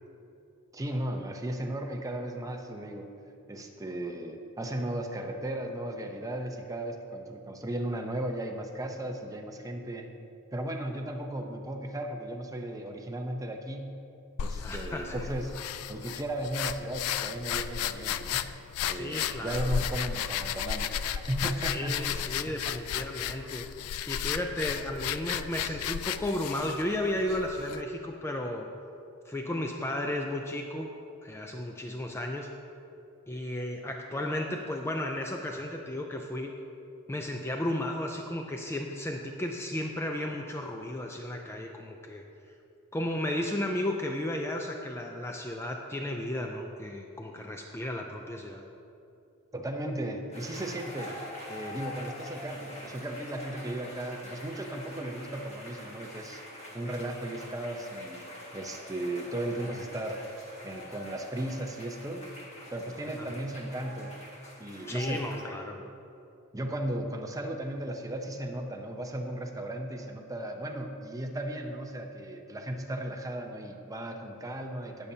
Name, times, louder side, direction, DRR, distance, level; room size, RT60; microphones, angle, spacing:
voice 1, 0.7-3.1 3.5-10.1 10.5-13.9 14.4-15.5 15.9-18.4 18.9-22.6 49.5-51.2 51.5-56.4 56.7-58.2 58.5-60.2 60.6-62.3 62.7-64.1 64.6-65.3 66.5-75.1, right 1 dB, 15° right, 3 dB, 0.7 m, -36 dB
sound 1, 14.4-27.8, left 9 dB, 75° left, 0.3 m, -34 dB
voice 2, 14.6-15.3 18.9-19.9 21.6-23.6 24.1-28.7 29.3-30.9 31.2-32.5 33.3-36.5 37.1-42.2 42.9-48.6 63.2-63.3 64.9-65.8, left 1 dB, 10° left, 2 dB, 0.4 m, -34 dB
sound 2, 50.3-65.4, left 1 dB, 30° left, 1.8 m, -45 dB
18.5 x 6.9 x 2.8 m, 2.7 s
head